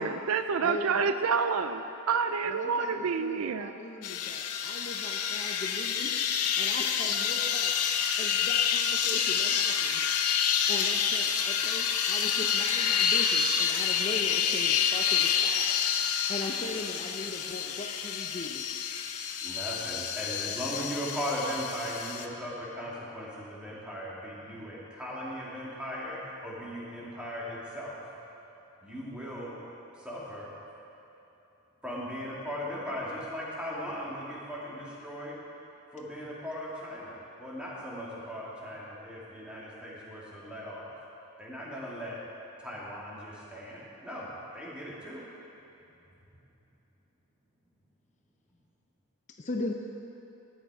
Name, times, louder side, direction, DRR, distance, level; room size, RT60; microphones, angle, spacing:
voice 1, 0.0-3.7, right 5 dB, 70° right, 9 dB, 0.4 m, -28 dB
voice 2, 0.6-1.2 2.5-6.1 6.6-7.7 8.2-10.0 10.7-15.7 16.3-18.6 49.4-49.7, left 2 dB, 35° left, 2 dB, 0.6 m, -39 dB
sound 1, 4.0-22.3, left 7 dB, 85° left, 0.7 m, -28 dB
voice 3, 19.4-28.0 28.8-29.6 30.0-30.5 31.8-35.4 35.9-40.9 41.4-42.2 42.6-45.2, equal, 5° right, -7 dB, 2.3 m, -38 dB
13.0 x 9.2 x 4.9 m, 2.9 s
head